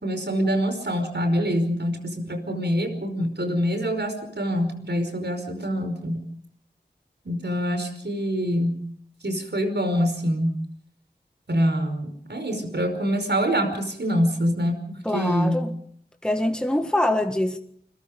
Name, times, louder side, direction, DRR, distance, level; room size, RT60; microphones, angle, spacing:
voice 1, 0.0-6.2 7.3-8.8 9.2-10.6 11.5-15.7, equal, 70° right, 5.3 m, -25 dB
voice 2, 15.1-15.7 16.2-17.6, left 1 dB, 5° left, 1.7 m, -24 dB
29.0 x 22.0 x 5.3 m
wide cardioid pair, 50°, 18 cm